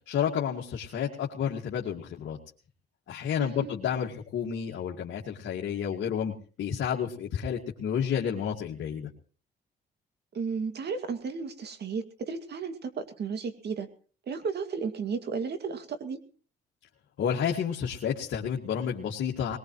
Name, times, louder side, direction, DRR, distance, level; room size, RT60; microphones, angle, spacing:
voice 1, 0.1-2.4 3.1-9.1 17.2-19.6, left 8 dB, 70° left, -1 dB, 2.1 m, -30 dB
voice 2, 3.4-3.8 10.3-13.9 14.3-16.2, right 5 dB, 55° right, 9 dB, 2.3 m, -34 dB
21.0 x 19.5 x 3.1 m, 0.40 s
cardioid pair, 90°, 20 cm